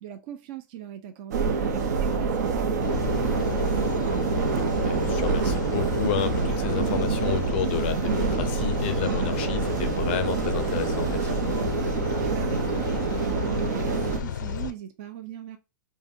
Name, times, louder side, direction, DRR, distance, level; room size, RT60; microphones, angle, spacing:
voice 1, 0.0-4.3 12.1-15.6, right 12 dB, 30° right, 0.4 m, -39 dB
sound 1, 1.3-14.2, right 5 dB, 70° right, 0.8 m, -26 dB
sound 2, 2.8-14.7, left 8 dB, 90° left, 0.5 m, -33 dB
voice 2, 4.8-11.6, left 9 dB, 35° left, 0.5 m, -31 dB
5.2 x 2.2 x 2.6 m
supercardioid pair, 175°, 10 cm